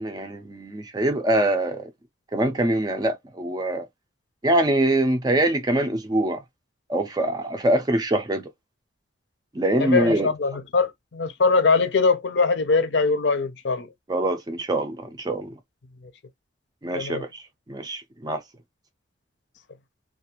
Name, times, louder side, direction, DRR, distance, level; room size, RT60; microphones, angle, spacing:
voice 1, 0.0-1.9 2.3-3.9 4.4-6.4 6.9-8.4 9.5-10.3 14.1-15.5 16.8-18.4, right 1 dB, 20° right, 0.4 m, -24 dB
voice 2, 9.8-13.9 16.9-17.2, left 4 dB, 70° left, 0.6 m, -22 dB
2.4 x 2.4 x 2.8 m
head